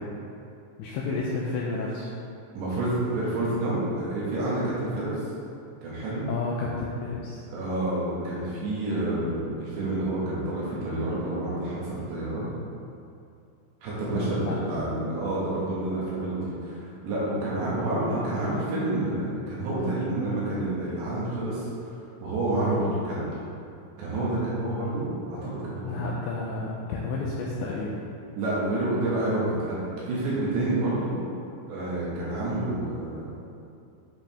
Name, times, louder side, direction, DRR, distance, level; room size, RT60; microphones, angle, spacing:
voice 1, 0.8-2.1 6.3-7.4 14.1-14.6 25.8-28.0, left 3 dB, 90° left, -4 dB, 2.6 m, -31 dB
voice 2, 2.6-5.2 5.8-6.2 7.5-12.5 13.8-21.7 22.2-23.3 24.0-26.0 28.4-29.8 30.1-31.1 31.7-33.3, right 1 dB, 65° right, -8 dB, 3.7 m, -28 dB
10.5 x 5.1 x 3.5 m, 2.5 s
omnidirectional pair, 5.9 m